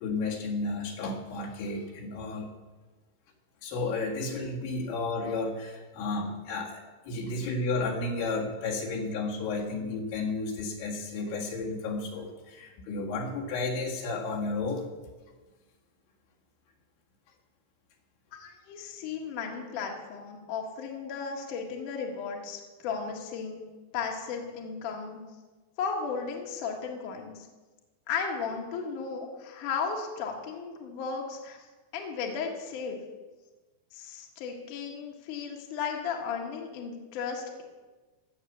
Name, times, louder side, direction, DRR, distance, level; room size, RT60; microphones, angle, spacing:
voice 1, 0.0-2.5 3.6-14.9, left 3 dB, 75° left, -1 dB, 4.1 m, -32 dB
voice 2, 18.4-23.6 23.9-25.2 25.8-27.4 28.1-31.6 31.9-33.0 33.9-37.6, left 5 dB, 60° left, 1 dB, 2.5 m, -35 dB
16.5 x 6.7 x 7.1 m, 1.3 s
omnidirectional pair, 5.5 m